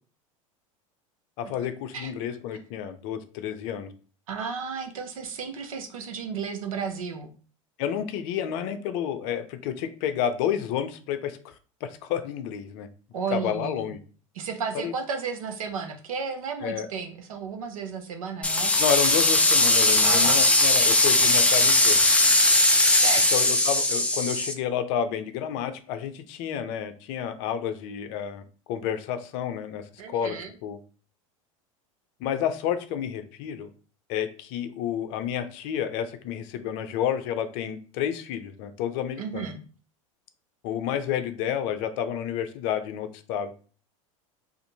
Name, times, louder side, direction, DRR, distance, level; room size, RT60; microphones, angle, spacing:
voice 1, 1.4-3.9 7.8-11.5 11.8-12.9 13.3-14.0 14.7-14.9 16.6-16.9 18.8-22.0 23.3-30.8 32.2-33.7 34.1-39.5 40.6-43.5, left 9 dB, 55° left, 9 dB, 0.5 m, -30 dB
voice 2, 4.3-7.3 13.1-14.0 14.3-18.7 20.0-20.4 23.0-23.3 30.0-30.5 39.2-39.6, right 5 dB, 80° right, 5 dB, 0.6 m, -33 dB
sound 1, 18.4-24.5, left 2 dB, 5° left, 0.4 m, -20 dB
2.6 x 2.5 x 2.7 m, 0.39 s
hypercardioid pair, 85°, 17 cm